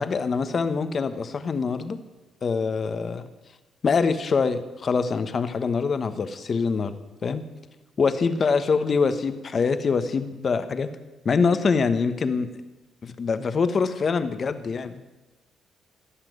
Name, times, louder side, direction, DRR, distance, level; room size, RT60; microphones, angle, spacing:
voice 1, 0.0-2.0 2.4-3.3 3.8-6.9 7.2-7.4 8.0-10.9 11.2-12.5 13.0-15.0, left 5 dB, 45° left, 11 dB, 1.1 m, -24 dB
16.0 x 5.9 x 9.4 m, 1.1 s
cardioid pair, 90°, 0 cm